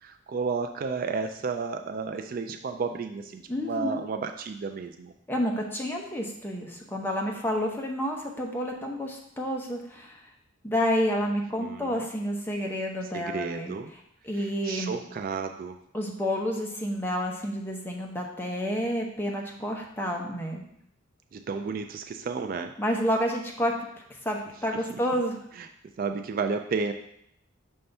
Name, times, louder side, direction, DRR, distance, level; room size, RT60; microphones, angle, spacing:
voice 1, 0.0-5.1 11.2-12.0 13.1-13.9 14.3-15.8 21.3-22.7 24.7-25.0 25.6-25.7 26.0-26.9, right 5 dB, 45° right, 6 dB, 0.3 m, -32 dB
voice 2, 3.5-4.0 5.3-10.2 10.6-13.7 14.2-15.0 15.9-20.6 22.8-23.7 24.2-25.4, equal, 10° left, 0 dB, 0.7 m, -29 dB
5.5 x 3.4 x 5.3 m, 0.74 s
head